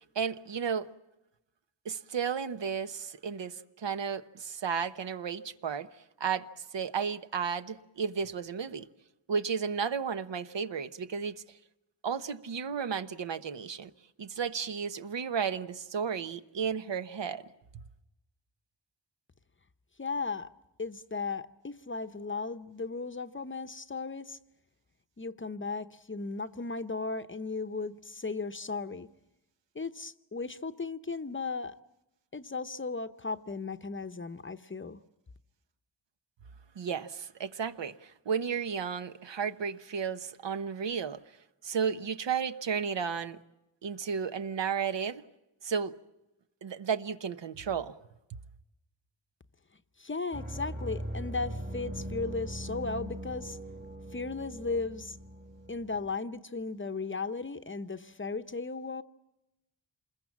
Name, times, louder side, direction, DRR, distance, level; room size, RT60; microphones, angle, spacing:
voice 1, 0.1-0.9 1.8-5.9 6.2-6.5 6.7-8.9 9.3-11.4 12.0-13.9 14.2-17.4 17.7-17.8 36.8-41.2 41.6-43.4 43.8-45.2 45.6-45.9 46.6-47.9 48.3-48.4, right 6 dB, 70° right, 1.1 m, -33 dB
voice 2, 20.0-20.5 20.8-24.4 25.2-29.1 29.7-31.7 32.3-35.0 50.0-53.6 54.1-55.2 55.7-59.0, left 4 dB, 25° left, 0.8 m, -36 dB
sound 1, 50.3-56.1, equal, 20° right, 1.6 m, -40 dB
27.5 x 21.0 x 7.4 m
wide cardioid pair, 100°, 45 cm